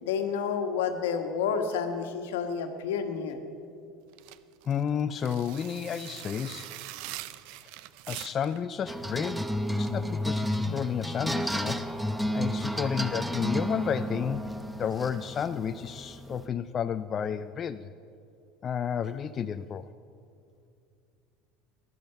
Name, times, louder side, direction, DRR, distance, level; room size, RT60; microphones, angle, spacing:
voice 1, 0.0-3.4, left 6 dB, 80° left, 6 dB, 1.3 m, -30 dB
sound 1, 4.1-8.6, right 16 dB, 70° right, 0.5 m, -43 dB
voice 2, 4.6-6.8 7.6-7.7 8.1-12.0 12.3-14.5 14.8-17.9 18.6-19.9, left 8 dB, 40° left, 11 dB, 0.4 m, -31 dB
sound 2, 8.9-16.5, equal, 5° right, 0.7 m, -32 dB
14.0 x 11.0 x 6.8 m, 2.5 s
hypercardioid pair, 90°, 0 cm